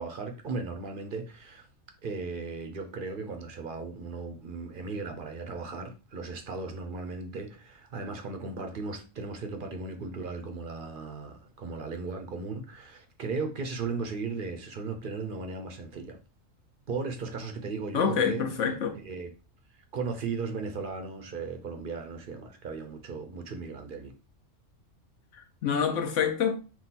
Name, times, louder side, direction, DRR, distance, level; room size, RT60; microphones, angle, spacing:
voice 1, 0.0-1.7 2.0-16.2 16.9-18.4 19.0-19.3 19.9-24.1, right 4 dB, 50° right, 0.7 m, -36 dB
voice 2, 17.9-18.9 25.3-26.6, left 7 dB, 65° left, 1.1 m, -27 dB
3.8 x 2.3 x 4.1 m
omnidirectional pair, 1.4 m